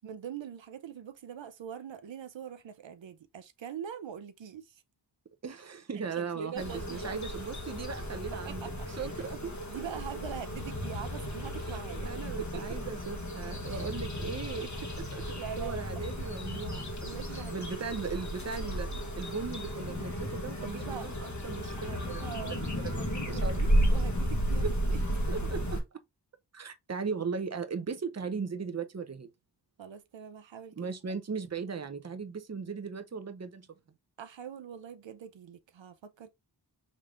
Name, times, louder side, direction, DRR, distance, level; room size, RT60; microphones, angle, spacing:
voice 1, 0.0-4.8 6.2-7.2 8.3-9.1 9.7-12.1 12.4-12.8 13.6-13.9 15.3-16.0 17.0-17.6 20.6-21.1 21.8-25.0 25.3-25.4 29.8-30.7 34.2-36.3, right 8 dB, 85° right, 0.5 m, -43 dB
voice 2, 5.4-8.6 8.9-9.8 11.7-11.8 12.0-16.9 17.3-23.7 24.6-24.7 25.3-25.8 26.5-29.3 30.8-33.7, right 5 dB, 35° right, 0.6 m, -38 dB
sound 1, 6.6-25.8, equal, 40° left, 1.2 m, -33 dB
5.2 x 3.3 x 2.4 m
wide cardioid pair, 50°, 44 cm